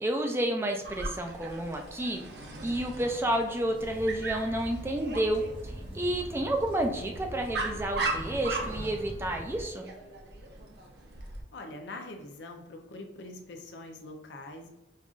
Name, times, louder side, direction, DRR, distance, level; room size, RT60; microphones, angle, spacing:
voice 1, 0.0-2.2 2.6-9.9, right 1 dB, 15° right, 3 dB, 0.3 m, -30 dB
Dog, 0.8-11.4, right 3 dB, 60° right, 0.7 m, -39 dB
sound 1, 3.7-9.6, equal, 30° right, 0.8 m, -42 dB
voice 2, 11.5-14.7, left 2 dB, 75° left, 4 dB, 0.6 m, -43 dB
5.3 x 2.4 x 2.4 m, 0.93 s
head